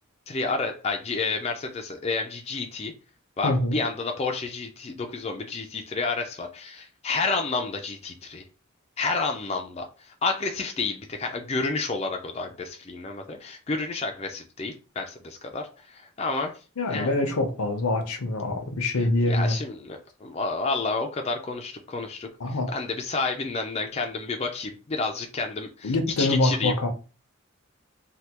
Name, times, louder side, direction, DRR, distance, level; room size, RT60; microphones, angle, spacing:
voice 1, 0.3-2.9 3.4-8.4 9.0-16.5 16.9-17.2 19.3-25.9 26.2-26.7, left 3 dB, 30° left, 0.3 m, -30 dB
voice 2, 3.4-3.8 16.8-19.6 22.4-22.7 25.8-26.9, left 2 dB, 80° left, 0.7 m, -25 dB
3.2 x 2.2 x 2.9 m
head